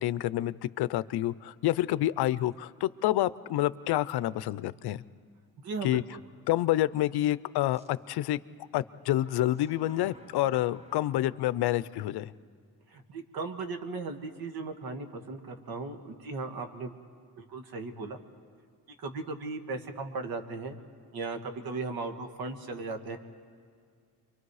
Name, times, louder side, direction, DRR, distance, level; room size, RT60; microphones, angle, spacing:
voice 1, 0.0-5.0 5.8-6.0 6.5-8.4 8.7-12.3, left 14 dB, 80° left, 17 dB, 0.6 m, -28 dB
sound 1, 2.4-2.6 3.2-3.3 7.7-7.9 9.1-11.4, right 1 dB, 15° right, 1.3 m, -55 dB
voice 2, 5.6-6.2 12.9-16.9 17.4-18.2 19.0-20.8 21.1-23.2, right 3 dB, 65° right, 6 dB, 1.9 m, -37 dB
29.0 x 24.0 x 4.8 m, 2.2 s
cardioid pair, 110°, 38 cm